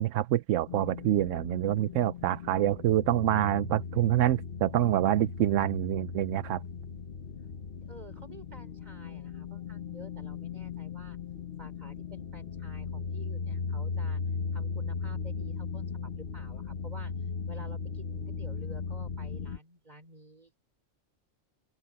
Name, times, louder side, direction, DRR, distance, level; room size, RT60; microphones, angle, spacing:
voice 1, 0.0-6.6, right 13 dB, 90° right, 1.0 m, -26 dB
sound 1, 0.7-19.6, left 5 dB, 50° left, 1.2 m, -37 dB
voice 2, 7.9-11.2 11.6-14.2 14.5-15.9 16.2-17.1 17.5-20.5, right 1 dB, 35° right, 4.8 m, -51 dB
open air
omnidirectional pair, 1.3 m